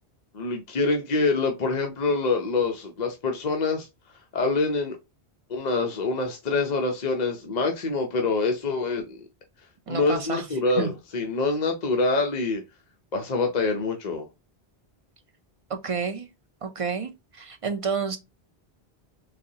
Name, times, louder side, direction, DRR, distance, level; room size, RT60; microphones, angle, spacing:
voice 1, 0.3-3.9 4.3-5.0 5.5-9.2 9.9-12.6 13.1-14.3, left 3 dB, 45° left, 0.7 m, -25 dB
voice 2, 9.9-10.4 10.8-10.9 15.7-16.3 16.6-18.2, right 5 dB, 40° right, 0.5 m, -30 dB
3.9 x 2.8 x 2.7 m
omnidirectional pair, 1.0 m